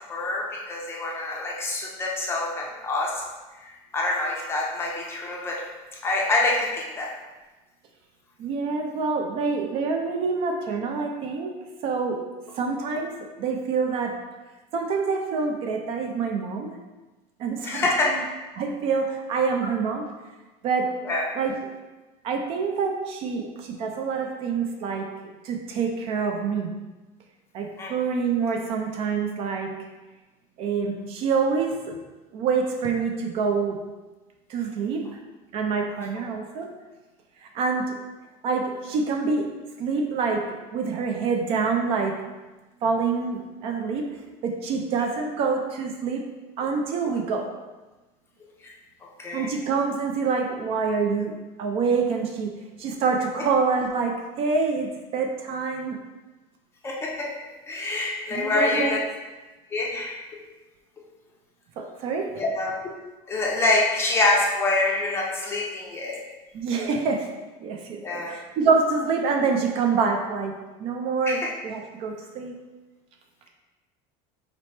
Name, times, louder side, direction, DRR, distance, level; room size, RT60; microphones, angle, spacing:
voice 1, 0.1-3.1 3.6-5.6 6.0-7.1 17.6-18.1 21.1-21.2 27.8-27.9 48.6-48.7 49.2-49.5 56.8-57.3 57.7-59.0 59.7-60.2 62.4-62.7 63.3-66.2 68.0-68.3 71.3-71.5, left 2 dB, 15° left, -2 dB, 0.5 m, -26 dB
voice 2, 8.4-11.6 11.8-12.2 12.5-14.1 14.7-16.8 17.4-18.2 18.6-20.0 20.6-20.9 21.3-21.5 22.2-25.1 25.4-26.7 27.5-29.7 30.6-32.0 32.3-33.8 34.5-35.1 35.5-36.7 37.4-38.0 38.4-39.5 39.8-42.2 42.8-44.1 44.4-46.3 46.6-47.5 49.3-52.5 52.8-56.0 58.3-59.0 61.8-62.3 66.5-67.3 67.6-72.6, right 5 dB, 40° right, 3 dB, 0.4 m, -26 dB
4.2 x 2.9 x 3.1 m, 1.2 s
cardioid pair, 170°, 15 cm